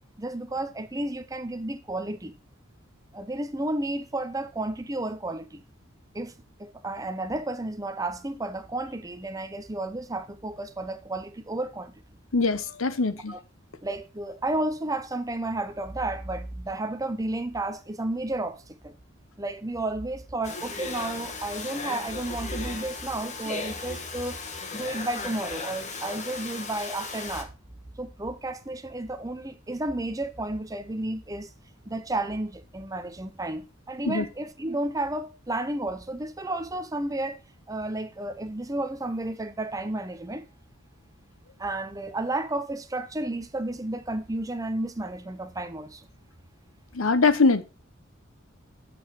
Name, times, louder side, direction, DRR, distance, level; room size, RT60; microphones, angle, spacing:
voice 1, 0.2-2.4 3.1-5.6 6.1-6.3 6.6-11.9 13.3-13.4 13.8-18.9 19.4-24.4 24.7-27.5 28.0-31.5 31.9-37.4 37.7-40.5 41.6-46.1, right 2 dB, 15° right, 0.7 m, -32 dB
voice 2, 12.3-13.3 34.1-34.3 46.9-47.6, left 4 dB, 80° left, 0.9 m, -22 dB
Domestic sounds home sounds, 20.4-27.4, left 4 dB, 35° left, 1.2 m, -36 dB
7.7 x 6.6 x 4.3 m
head